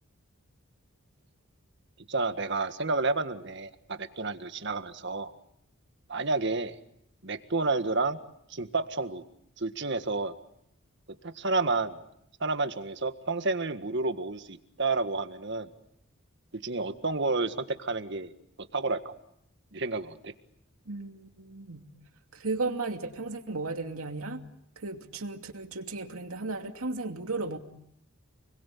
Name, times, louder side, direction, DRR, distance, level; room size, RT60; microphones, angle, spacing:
voice 1, 2.1-5.3 6.1-6.8 7.2-8.2 8.5-9.2 9.6-10.4 11.2-12.0 12.4-15.7 16.5-18.3 18.6-19.1 19.7-20.3, right 3 dB, 55° right, 9 dB, 1.7 m, -30 dB
voice 2, 20.9-21.9 22.3-24.5 24.8-27.6, right 3 dB, 90° right, 5 dB, 2.6 m, -35 dB
29.5 x 21.5 x 8.5 m, 0.75 s
head